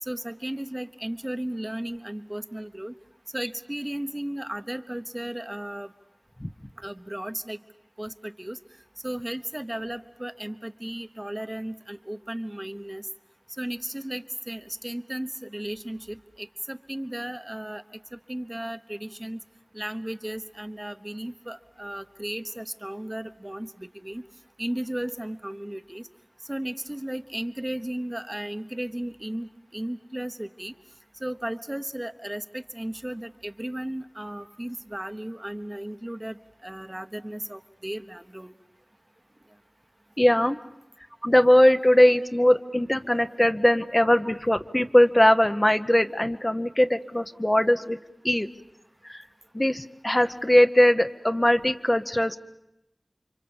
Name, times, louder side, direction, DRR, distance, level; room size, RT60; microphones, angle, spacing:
voice 1, 0.0-2.9 3.3-5.9 6.8-7.6 8.0-8.6 9.0-13.1 13.6-17.8 18.1-19.4 19.7-24.2 24.6-26.1 26.5-30.7 31.2-38.5, right 1 dB, 25° right, 10 dB, 1.0 m, -35 dB
voice 2, 40.2-40.6 41.3-48.0 48.2-48.5 49.1-49.2 49.5-52.4, left 1 dB, 25° left, 8 dB, 0.9 m, -20 dB
29.0 x 25.0 x 7.2 m, 0.85 s
wide cardioid pair, 45°, 0 cm